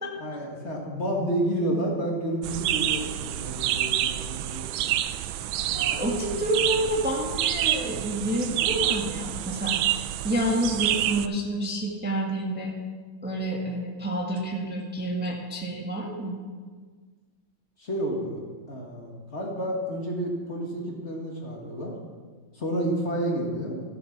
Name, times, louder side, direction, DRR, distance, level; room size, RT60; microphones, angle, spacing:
voice 1, 0.2-4.7 17.8-18.4 18.7-21.9 22.6-23.8, right 1 dB, 35° left, -1 dB, 1.9 m, -30 dB
sound 1, 2.4-11.3, right 12 dB, 80° right, 1.3 m, -28 dB
voice 2, 5.7-12.7 13.2-16.4, right 1 dB, 5° right, -2 dB, 1.2 m, -29 dB
14.5 x 7.9 x 5.9 m, 1.5 s
omnidirectional pair, 2.2 m